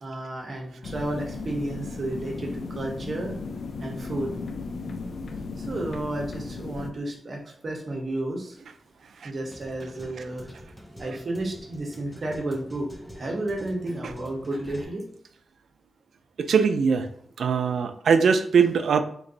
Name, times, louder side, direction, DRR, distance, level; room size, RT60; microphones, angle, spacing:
voice 1, 0.0-3.4 3.8-4.3 5.6-8.6 9.2-10.5 11.0-12.9 13.1-15.0, right 1 dB, 45° right, 0 dB, 0.8 m, -32 dB
sound 1, 0.8-6.9, left 3 dB, 65° left, 0.4 m, -35 dB
sound 2, 8.7-14.8, equal, ahead, 0.5 m, -46 dB
voice 2, 16.4-17.1 17.4-19.0, right 6 dB, 80° right, 9 dB, 0.3 m, -21 dB
3.0 x 2.5 x 3.8 m, 0.62 s
wide cardioid pair, 140°, 0 cm